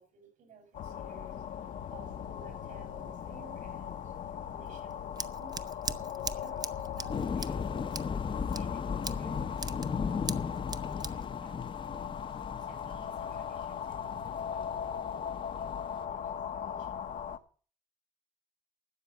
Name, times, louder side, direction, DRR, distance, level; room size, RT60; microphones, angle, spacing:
voice 1, 0.0-17.1, right 5 dB, 70° right, 4 dB, 6.8 m, -57 dB
sound 1, 0.7-17.4, left 8 dB, 65° left, 1.1 m, -39 dB
Scissors, 4.7-12.4, right 4 dB, 30° right, 0.8 m, -42 dB
sound 2, 7.1-16.0, left 6 dB, 35° left, 0.8 m, -37 dB
12.5 x 7.8 x 7.1 m, 0.41 s
cardioid pair, 100°, 14 cm